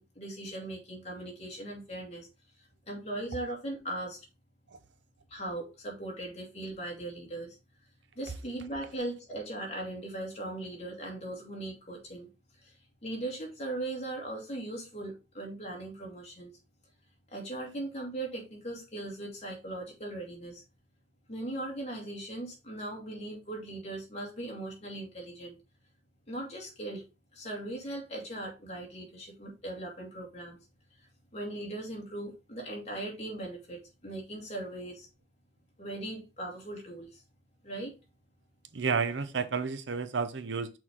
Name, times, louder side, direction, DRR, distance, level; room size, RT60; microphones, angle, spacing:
voice 1, 0.0-2.3 2.6-4.2 5.3-7.6 8.2-12.3 12.6-12.8 13.0-16.5 17.3-20.6 21.3-25.5 26.3-27.1 27.3-30.6 31.0-35.1 35.8-37.2 37.6-37.9, right 1 dB, 35° left, 2.3 m, -39 dB
voice 2, 38.7-40.7, right 5 dB, 70° right, 0.7 m, -31 dB
6.2 x 4.5 x 3.6 m
head